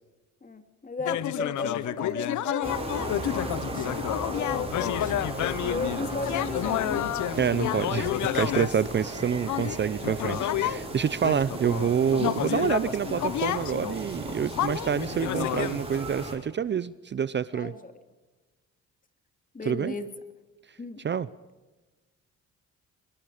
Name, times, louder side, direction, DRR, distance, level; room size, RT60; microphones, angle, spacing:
voice 1, 0.4-7.0 11.1-11.2 17.5-17.9 19.5-20.1 20.8-21.0, left 3 dB, 25° left, 8 dB, 2.7 m, -36 dB
sound 1, 1.0-10.8 11.2-16.0, left 13 dB, 75° left, 0.9 m, -30 dB
sound 2, 2.6-16.3, right 2 dB, 20° right, 7.0 m, -36 dB
voice 2, 7.4-17.7 19.6-19.9 21.0-21.3, right 7 dB, 40° right, 17 dB, 0.7 m, -27 dB
24.0 x 22.5 x 5.0 m, 1.2 s
cardioid pair, 90°, 30 cm